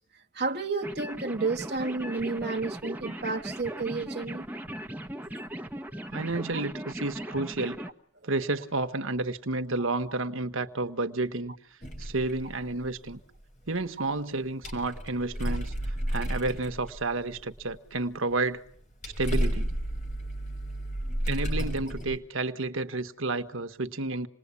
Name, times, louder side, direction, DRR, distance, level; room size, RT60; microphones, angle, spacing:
voice 1, 0.3-4.4 6.5-6.6, right 3 dB, 50° right, 1.4 m, -31 dB
sound 1, 0.8-7.9, right 1 dB, 10° right, 1.3 m, -38 dB
voice 2, 6.1-7.8 8.2-11.5 12.0-13.2 13.7-18.6 19.0-19.7 21.2-24.3, right 2 dB, 80° right, 1.4 m, -31 dB
sound 2, 11.8-13.4 13.8-13.9 14.4-18.4 18.7-22.2, equal, 35° left, 4.0 m, -32 dB
28.0 x 20.5 x 8.4 m
head